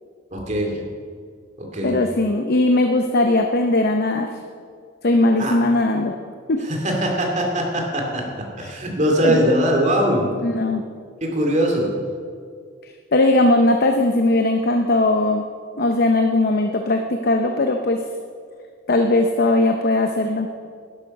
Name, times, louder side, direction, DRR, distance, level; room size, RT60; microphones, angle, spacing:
voice 1, 0.3-0.8 1.6-2.0 5.4-5.6 6.6-10.4 11.2-11.9, equal, 40° right, 0 dB, 2.4 m, -21 dB
voice 2, 1.8-4.3 5.0-6.1 6.5-6.6 9.2-9.5 10.4-10.8 13.1-15.4 15.8-18.0 18.9-20.5, left 2 dB, 50° left, 5 dB, 0.7 m, -19 dB
12.0 x 11.5 x 5.3 m, 2.1 s
head